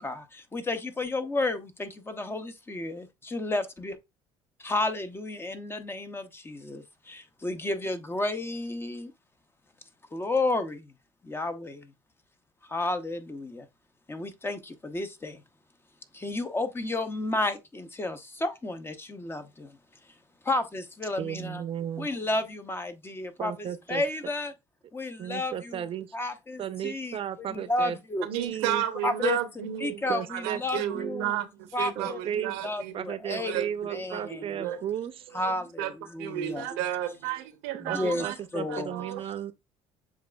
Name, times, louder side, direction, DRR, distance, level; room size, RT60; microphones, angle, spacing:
voice 1, 0.0-4.0 4.6-9.1 10.1-10.9 11.2-11.9 12.7-13.7 14.1-15.4 16.1-19.8 20.4-21.6 22.0-24.5 24.9-25.9 26.1-28.3 29.0-29.4 29.8-31.4 31.7-33.6 33.9-34.7 35.3-36.7 37.8-38.3 38.5-38.9, left 2 dB, 20° left, 0.7 m, -32 dB
voice 2, 21.2-22.1 23.4-24.0 25.2-26.1 26.6-28.0 28.4-28.8 30.1-31.5 32.0-32.6 32.9-35.1 37.9-39.5, right 9 dB, 45° right, 0.6 m, -34 dB
voice 3, 28.2-30.0 30.3-33.0 33.4-34.8 35.4-35.5 35.8-35.9 36.2-38.4 38.7-39.2, right 11 dB, 85° right, 0.7 m, -33 dB
7.2 x 2.4 x 2.3 m
supercardioid pair, 85°, 13 cm